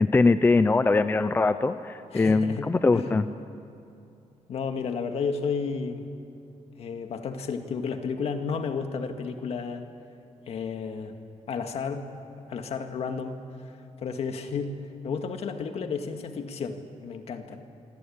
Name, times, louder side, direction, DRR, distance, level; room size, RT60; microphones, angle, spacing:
voice 1, 0.0-3.2, left 3 dB, 15° left, 11 dB, 0.5 m, -22 dB
voice 2, 2.1-2.7 2.9-3.1 4.5-6.1 6.8-9.8 10.5-11.1 11.5-12.1 12.5-13.4 14.0-14.7 15.0-17.6, left 5 dB, 60° left, 6 dB, 2.0 m, -32 dB
26.0 x 25.0 x 8.8 m, 2.6 s
wide cardioid pair, 175°, 12 cm